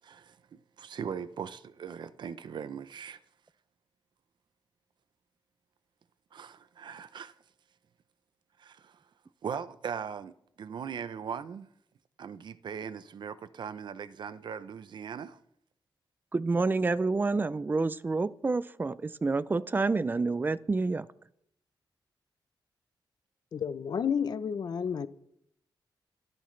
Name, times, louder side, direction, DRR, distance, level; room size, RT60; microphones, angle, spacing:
voice 1, 0.0-0.4 0.8-3.2 6.3-7.3 8.6-9.0 9.4-11.7 12.2-15.4, right 7 dB, 70° right, 0.7 m, -39 dB
voice 2, 16.3-21.1, right 3 dB, 25° right, 0.5 m, -28 dB
voice 3, 23.5-25.1, left 7 dB, 55° left, 0.7 m, -31 dB
25.0 x 13.0 x 3.3 m
wide cardioid pair, 160°, 8 cm